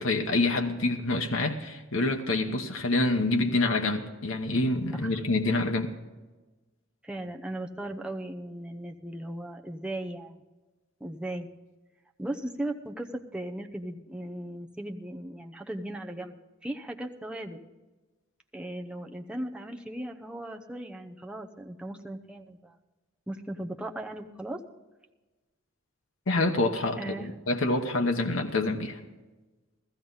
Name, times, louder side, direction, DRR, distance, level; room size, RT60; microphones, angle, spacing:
voice 1, 0.0-5.9 26.3-29.0, left 2 dB, 75° left, 4 dB, 1.0 m, -27 dB
voice 2, 7.0-10.4 11.0-11.5 12.2-16.4 16.6-17.6 18.5-22.7 23.3-24.6 27.0-27.3, right 1 dB, 5° right, 2 dB, 0.7 m, -37 dB
15.0 x 14.5 x 4.0 m, 1.2 s
head